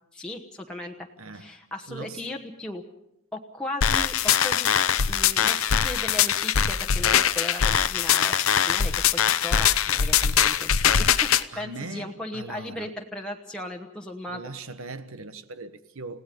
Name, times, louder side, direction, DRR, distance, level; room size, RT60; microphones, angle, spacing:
voice 1, 0.1-1.1 1.3-2.8 3.3-4.7 5.1-14.4, left 1 dB, 5° left, 1.1 m, -37 dB
voice 2, 1.2-2.4 11.5-12.9 14.3-16.2, right 3 dB, 80° right, 1.3 m, -40 dB
sound 1, 3.8-11.4, left 8 dB, 85° left, 0.8 m, -22 dB
30.0 x 17.0 x 5.4 m
head